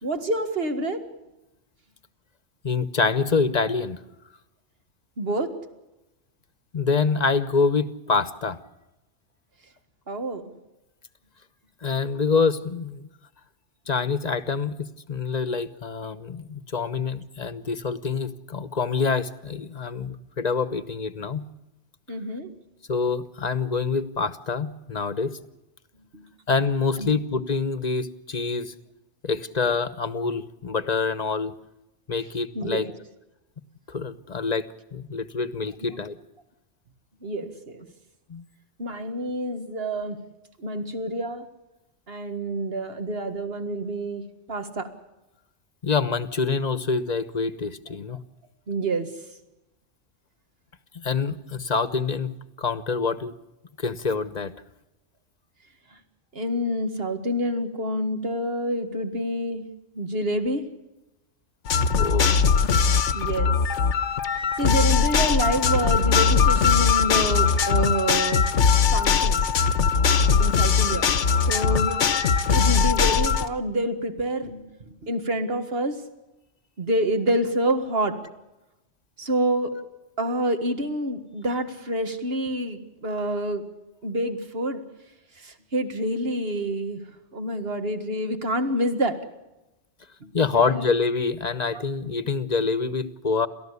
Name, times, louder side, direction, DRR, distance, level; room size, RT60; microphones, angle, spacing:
voice 1, 0.0-1.0 5.2-5.5 10.1-10.4 22.1-22.5 26.1-26.2 27.0-27.1 32.6-32.9 35.8-35.9 37.2-37.9 38.8-40.2 40.6-41.5 42.1-44.2 44.5-44.9 48.7-49.1 56.4-59.7 60.0-60.6 63.1-63.5 64.6-68.5 68.9-69.5 70.4-71.1 71.4-72.1 72.5-76.0 76.8-78.2 79.2-79.7 80.2-83.6 84.0-84.8 85.4-87.0 87.3-89.2 90.2-90.8 91.7-92.1, right 1 dB, 55° right, 8 dB, 2.1 m, -27 dB
voice 2, 2.6-4.0 6.7-8.6 11.8-13.1 13.9-21.5 22.9-25.4 26.5-28.7 29.2-31.5 32.1-32.9 33.9-36.2 38.3-38.4 45.8-48.2 50.9-53.3 53.8-54.5 61.8-62.7 90.3-93.5, left 4 dB, 35° left, 14 dB, 1.1 m, -26 dB
sound 1, 61.7-73.5, left 6 dB, 85° left, 1.4 m, -20 dB
30.0 x 14.0 x 8.3 m, 0.99 s
omnidirectional pair, 1.2 m